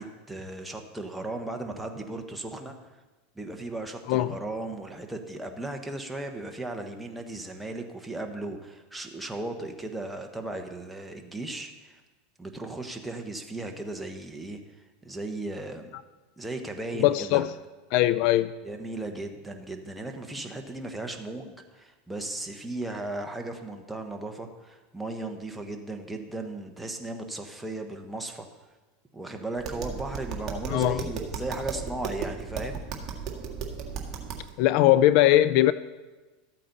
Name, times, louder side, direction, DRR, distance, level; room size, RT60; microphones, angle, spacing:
voice 1, 0.0-2.7 3.3-12.0 12.4-14.6 15.0-15.9 16.4-17.4 18.6-28.5 29.1-32.8, right 2 dB, 5° right, 3 dB, 1.2 m, -36 dB
voice 2, 17.0-17.5 17.9-18.5 30.7-31.0 34.6-35.7, left 14 dB, 55° left, 15 dB, 0.3 m, -20 dB
Tap, 29.6-34.5, right 5 dB, 35° right, 1.6 m, -35 dB
13.0 x 8.5 x 4.1 m, 1.2 s
supercardioid pair, 125°, 0 cm